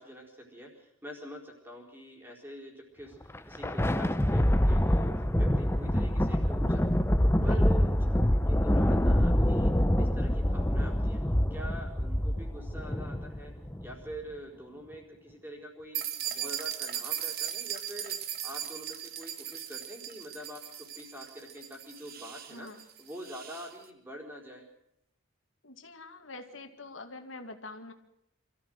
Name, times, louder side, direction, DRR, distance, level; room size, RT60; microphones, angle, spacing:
voice 1, 0.0-7.1 7.4-9.7 10.0-11.2 11.5-13.5 13.8-18.1 18.4-22.7 23.0-24.6, equal, 10° right, 0 dB, 4.5 m, -45 dB
Thunder, 3.2-13.9, equal, 10° left, 0.8 m, -26 dB
sound 1, 15.9-23.7, right 10 dB, 50° right, 1.5 m, -38 dB
voice 2, 22.5-22.8 25.6-27.9, left 2 dB, 75° left, 6 dB, 2.2 m, -45 dB
26.0 x 14.5 x 7.9 m, 0.82 s
head